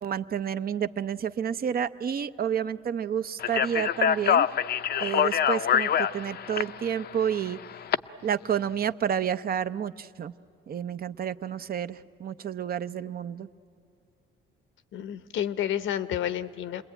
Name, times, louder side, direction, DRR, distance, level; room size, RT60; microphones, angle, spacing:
voice 1, 0.0-4.5 5.0-7.6 8.2-10.3 10.7-13.5, right 8 dB, 50° right, 13 dB, 0.6 m, -30 dB
Speech, 3.4-8.0, left 9 dB, 55° left, 0.5 m, -25 dB
voice 2, 14.9-16.8, left 10 dB, 80° left, 13 dB, 0.9 m, -30 dB
27.5 x 21.0 x 9.0 m, 2.6 s
cardioid pair, 90°, 20 cm